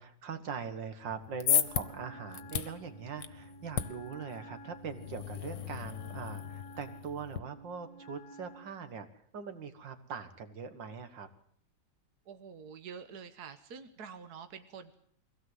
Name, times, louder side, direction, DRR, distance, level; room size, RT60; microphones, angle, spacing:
voice 1, 0.0-11.3, right 6 dB, 80° right, 10 dB, 2.3 m, -42 dB
sound 1, 1.1-7.4, left 9 dB, 75° left, 1.8 m, -36 dB
Wind instrument woodwind instrument, 1.6-8.8, right 1 dB, 45° left, 2.2 m, -52 dB
voice 2, 12.3-14.9, right 6 dB, 60° right, 10 dB, 1.6 m, -47 dB
23.0 x 17.0 x 8.1 m, 0.64 s
omnidirectional pair, 1.9 m